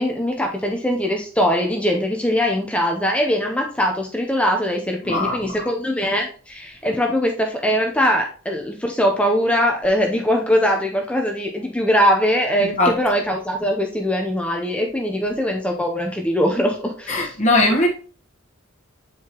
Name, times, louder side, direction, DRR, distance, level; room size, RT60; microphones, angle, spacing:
voice 1, 0.0-17.3, equal, 5° left, 0.7 m, -21 dB
voice 2, 5.0-5.5 12.8-13.0 17.1-17.9, left 2 dB, 35° left, 1.4 m, -19 dB
7.8 x 4.7 x 3.0 m
head